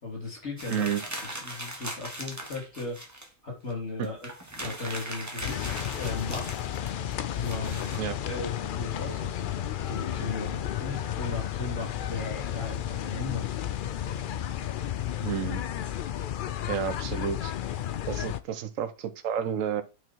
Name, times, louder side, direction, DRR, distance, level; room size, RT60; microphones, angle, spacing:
voice 1, 0.0-3.0 3.4-4.3 4.6-6.7 7.3-8.0 8.3-13.6, left 3 dB, 55° left, -1 dB, 3.5 m, -37 dB
sound 1, 0.6-3.3 3.7-3.8 4.0-8.0, right 1 dB, 15° right, 1.2 m, -39 dB
voice 2, 0.7-1.0 4.0-4.1 7.9-8.2 15.2-15.6 16.7-17.5 18.1-19.8, right 9 dB, 70° right, 10 dB, 1.2 m, -30 dB
sound 2, 5.4-18.4, left 11 dB, 85° left, 0.4 m, -32 dB
8.9 x 4.0 x 4.6 m, 0.31 s
omnidirectional pair, 1.4 m